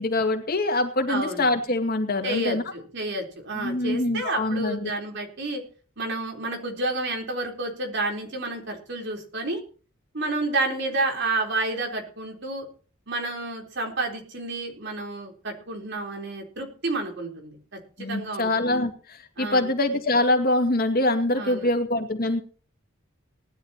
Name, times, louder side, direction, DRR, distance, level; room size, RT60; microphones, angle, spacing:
voice 1, 0.0-2.6 3.5-4.9 18.0-22.4, left 2 dB, 45° left, 5 dB, 2.3 m, -24 dB
voice 2, 1.1-1.5 2.2-5.6 6.0-9.6 10.1-12.7 13.1-17.6 18.1-18.8 19.4-19.7 21.3-21.7, right 2 dB, 60° right, 3 dB, 4.1 m, -30 dB
19.5 x 12.5 x 3.0 m, 0.39 s
head